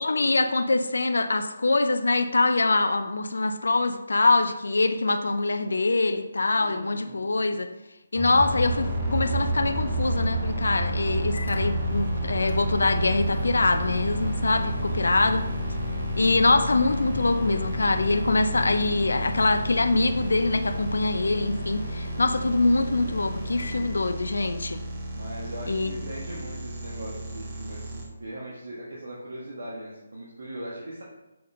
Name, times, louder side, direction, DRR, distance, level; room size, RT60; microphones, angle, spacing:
voice 1, 0.0-7.7 8.1-15.5 16.2-24.8 25.7-26.0, left 3 dB, 85° left, 8 dB, 0.5 m, -24 dB
voice 2, 6.5-7.3 14.8-15.6 25.1-31.0, right 1 dB, 80° right, -5 dB, 1.4 m, -40 dB
sound 1, 8.1-21.1, equal, 10° right, 0.7 m, -35 dB
sound 2, 8.3-28.1, right 1 dB, 35° right, 1.1 m, -32 dB
Microwave oven, 10.7-24.7, left 3 dB, 70° left, 1.6 m, -42 dB
6.6 x 4.2 x 3.7 m, 0.98 s
hypercardioid pair, 165°, 0 cm